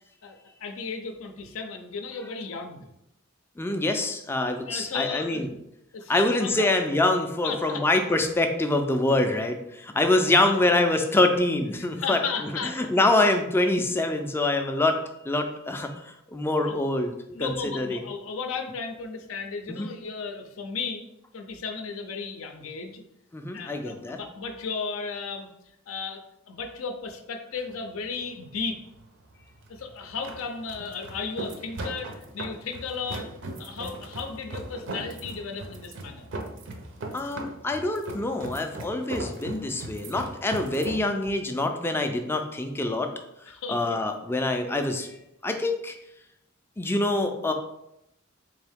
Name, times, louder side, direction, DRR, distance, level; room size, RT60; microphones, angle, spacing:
voice 1, 0.2-2.9 4.7-5.4 5.9-6.7 7.4-7.9 10.2-10.6 11.8-12.8 16.6-16.8 17.3-21.0 21.3-23.0 23.5-25.5 25.9-28.8 29.7-33.3 33.6-36.3 43.5-44.0, left 5 dB, 80° left, 5 dB, 0.5 m, -35 dB
voice 2, 3.6-5.5 6.1-12.5 12.8-15.0 15.2-17.1 17.4-18.0 19.7-19.9 23.3-24.2 37.1-43.1 43.5-45.1 45.4-45.9 46.8-47.5, left 2 dB, 10° left, 5 dB, 0.3 m, -25 dB
sound 1, 27.6-41.0, right 2 dB, 60° right, 0.5 m, -39 dB
3.8 x 2.7 x 3.4 m, 0.82 s
head